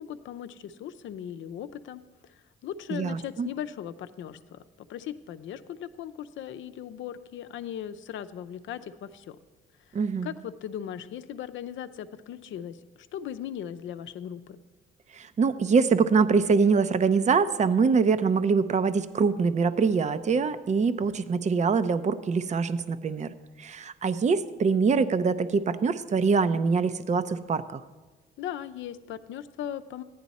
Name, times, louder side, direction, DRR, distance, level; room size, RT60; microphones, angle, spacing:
voice 1, 0.0-2.0 2.3-4.6 4.9-9.4 10.2-14.6 28.4-30.0, left 10 dB, 75° left, 10 dB, 0.6 m, -38 dB
voice 2, 2.9-3.5 9.9-10.3 15.1-23.3 23.6-27.8, right 5 dB, 35° right, 13 dB, 0.6 m, -24 dB
14.5 x 10.5 x 4.2 m, 1.3 s
cardioid pair, 90°, 20 cm